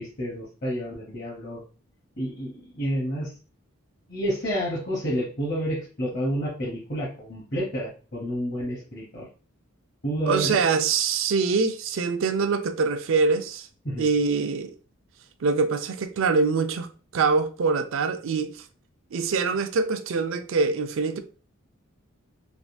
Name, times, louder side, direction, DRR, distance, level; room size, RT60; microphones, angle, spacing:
voice 1, 0.0-1.6 2.2-3.3 4.1-9.2 10.0-10.6 13.8-14.1, equal, 45° left, 0.8 m, -29 dB
voice 2, 10.3-13.7 14.0-14.7 15.4-16.9 17.1-18.6 19.1-21.2, right 4 dB, 70° right, 0.4 m, -24 dB
3.4 x 2.4 x 2.5 m
head